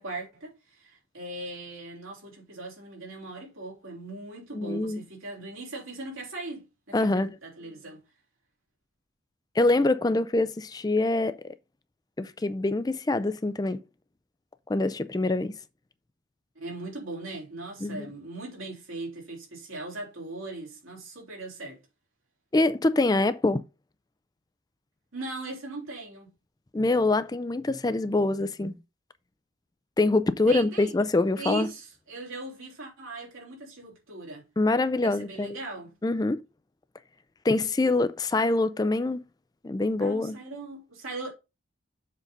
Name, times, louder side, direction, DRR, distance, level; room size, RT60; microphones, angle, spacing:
voice 1, 0.0-8.0 16.6-21.8 25.1-26.3 30.5-30.9 31.4-34.5 35.0-35.9 40.0-41.3, right 2 dB, 85° right, 3.7 m, -39 dB
voice 2, 4.5-5.0 6.9-7.4 9.6-11.4 12.2-13.8 14.7-15.5 17.8-18.1 22.5-23.6 26.7-28.7 30.0-31.7 34.6-35.6 36.0-36.4 37.4-39.2 39.6-40.4, left 2 dB, 20° left, 0.4 m, -25 dB
7.3 x 3.9 x 5.2 m
head